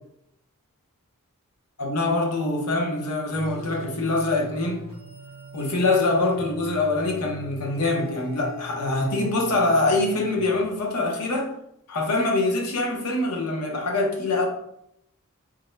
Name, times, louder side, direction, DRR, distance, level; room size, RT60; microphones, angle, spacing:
voice 1, 1.8-4.9 5.5-11.5 11.9-14.5, left 2 dB, 90° left, 0.7 m, -24 dB
sound 1, 3.3-10.8, left 1 dB, 25° left, 0.9 m, -41 dB
3.5 x 2.1 x 3.2 m
head